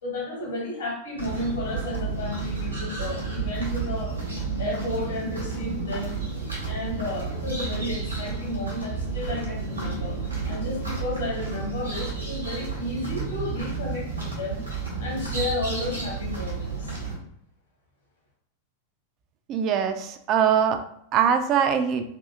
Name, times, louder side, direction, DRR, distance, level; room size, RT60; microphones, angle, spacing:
voice 1, 0.0-4.1 4.6-10.2 10.4-14.6 15.0-16.9, left 2 dB, 65° left, -2 dB, 1.1 m, -32 dB
sound 1, 1.2-17.1, right 4 dB, 80° right, 0.9 m, -31 dB
voice 2, 19.5-20.8 21.1-22.0, right 8 dB, 35° right, 8 dB, 0.3 m, -22 dB
2.7 x 2.7 x 2.3 m, 0.70 s
figure-of-eight pair, 90°, 0 cm